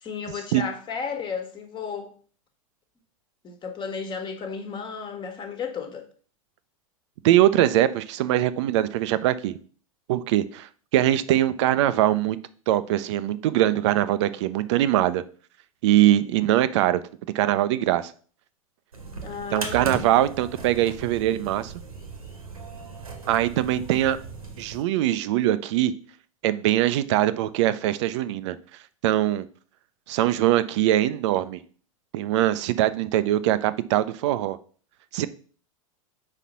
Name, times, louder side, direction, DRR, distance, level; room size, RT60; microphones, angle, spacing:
voice 1, 0.0-2.1 3.4-6.1 19.2-20.0, left 5 dB, 25° left, 1.4 m, -33 dB
voice 2, 7.2-9.6 10.1-12.4 12.7-15.2 15.8-17.0 17.3-18.1 19.5-21.7 23.3-24.2 24.6-25.9 26.4-28.6 29.0-29.4 30.1-31.6 32.1-34.6 35.1-35.3, right 13 dB, 55° right, 0.5 m, -22 dB
sound 1, 18.9-24.8, right 4 dB, 90° right, 1.4 m, -38 dB
4.9 x 4.3 x 5.5 m
hypercardioid pair, 95°, 18 cm